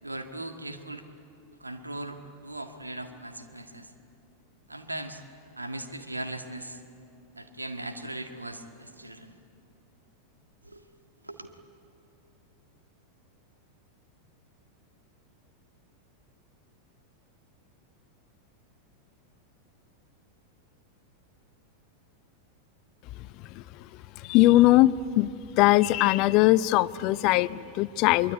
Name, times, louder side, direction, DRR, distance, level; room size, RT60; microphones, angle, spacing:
voice 1, 0.0-1.1 1.6-3.9 4.7-5.2 5.6-6.8 7.3-9.4 10.6-10.8 11.2-11.5, right 1 dB, 85° right, 7 dB, 1.8 m, -39 dB
voice 2, 24.2-25.3 25.6-28.3, left 16 dB, 40° left, 19 dB, 0.5 m, -20 dB
24.5 x 23.5 x 9.5 m, 2.7 s
figure-of-eight pair, 90°, 0 cm